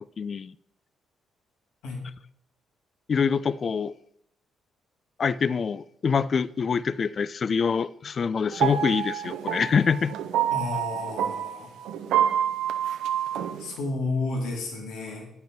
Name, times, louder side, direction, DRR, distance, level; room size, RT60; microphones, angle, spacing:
voice 1, 0.2-0.5 3.1-3.9 5.2-10.1, left 6 dB, 45° left, 18 dB, 0.4 m, -25 dB
sound 1, 8.5-13.7, right 10 dB, 85° right, 0.7 m, -27 dB
voice 2, 10.5-11.9 13.6-15.3, left 3 dB, 85° left, 0 dB, 2.3 m, -32 dB
8.8 x 5.5 x 5.9 m, 0.79 s
cardioid pair, 90°, 0 cm